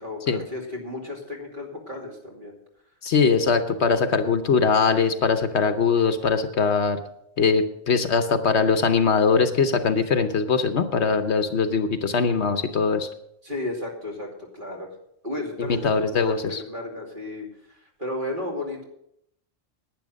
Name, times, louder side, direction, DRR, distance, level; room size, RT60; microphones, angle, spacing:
voice 1, 0.0-2.5 13.4-14.9 15.2-18.8, left 2 dB, 40° right, 0 dB, 2.9 m, -34 dB
voice 2, 3.0-7.0 7.4-13.1 15.6-16.6, left 5 dB, 65° left, 9 dB, 1.1 m, -21 dB
11.0 x 9.8 x 6.4 m, 0.76 s
omnidirectional pair, 1.3 m